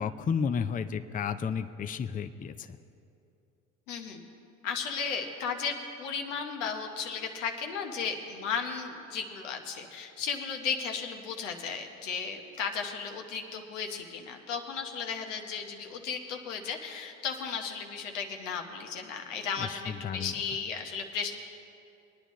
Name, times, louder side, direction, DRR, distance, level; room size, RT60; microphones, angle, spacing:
voice 1, 0.0-2.8 19.6-20.3, left 6 dB, 25° left, 10 dB, 0.5 m, -32 dB
voice 2, 3.9-4.2 4.6-21.3, left 6 dB, 85° left, 3 dB, 1.0 m, -35 dB
21.0 x 9.7 x 3.1 m, 2.7 s
hypercardioid pair, 60°, 36 cm